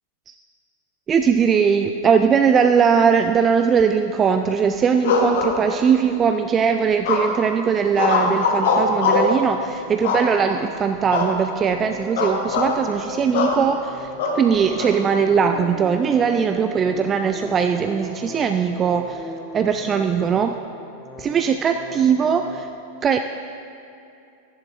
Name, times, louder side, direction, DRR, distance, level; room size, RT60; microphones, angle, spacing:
voice 1, 1.1-20.6 21.2-22.7 23.0-23.2, right 6 dB, 25° right, 7 dB, 0.4 m, -20 dB
sound 1, 5.0-6.1 7.0-7.5 7.9-9.4 10.0-10.6 11.1-11.4 11.7-11.8 12.2-12.7 13.3-13.6 14.2-14.9, left 4 dB, 55° left, 1.3 m, -21 dB
sound 2, 8.6-22.6, left 2 dB, 15° left, 1.3 m, -39 dB
14.0 x 10.5 x 2.6 m, 2.7 s
figure-of-eight pair, 90°, 0 cm